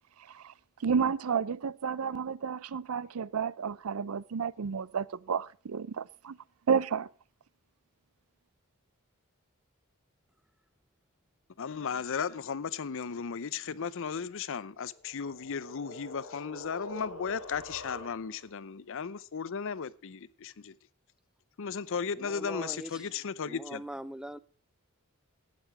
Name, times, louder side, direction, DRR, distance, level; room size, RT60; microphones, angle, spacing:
voice 1, 0.2-0.5 0.8-6.4 6.7-7.1, right 6 dB, 80° right, 0.5 m, -31 dB
voice 2, 11.6-20.7 21.6-23.8, left 6 dB, 65° left, 0.6 m, -35 dB
sound 1, 14.7-18.5, left 2 dB, 90° left, 3.7 m, -45 dB
voice 3, 22.1-23.1 23.5-24.4, right 1 dB, 5° right, 0.5 m, -42 dB
11.5 x 9.5 x 4.6 m
head